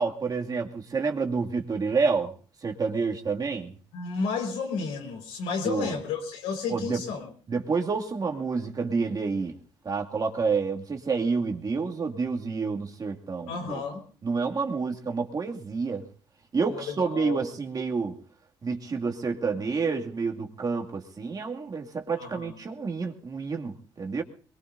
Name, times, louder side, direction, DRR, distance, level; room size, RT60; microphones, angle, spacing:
voice 1, 0.0-2.3 2.6-3.7 5.6-5.9 6.7-7.0 7.5-9.6 9.8-13.8 14.2-16.0 16.5-18.1 18.6-24.2, right 4 dB, 35° right, 1 dB, 2.4 m, -29 dB
voice 2, 3.9-7.3 13.5-14.0 16.7-17.4 22.1-22.6, left 5 dB, 85° left, 2 dB, 4.9 m, -32 dB
23.0 x 22.5 x 2.7 m, 0.41 s
supercardioid pair, 75°, 11 cm